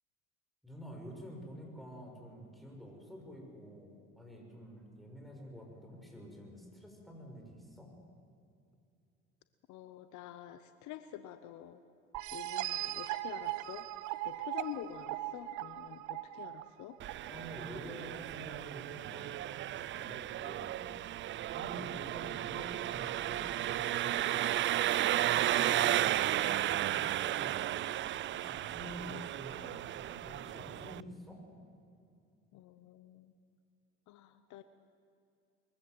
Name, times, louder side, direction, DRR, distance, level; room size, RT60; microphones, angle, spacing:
voice 1, 0.6-7.9 17.3-20.9 21.5-24.5 25.1-31.4, equal, ahead, 0 dB, 6.4 m, -49 dB
voice 2, 9.7-11.8 12.3-13.8 14.2-17.0 32.5-33.3 34.1-34.6, left 11 dB, 65° left, 11 dB, 1.0 m, -47 dB
sound 1, 12.1-17.6, right 15 dB, 65° right, 0.8 m, -39 dB
Engine, 17.0-31.0, right 13 dB, 40° right, 0.4 m, -34 dB
22.5 x 15.0 x 8.0 m, 2.5 s
hypercardioid pair, 70°, 31 cm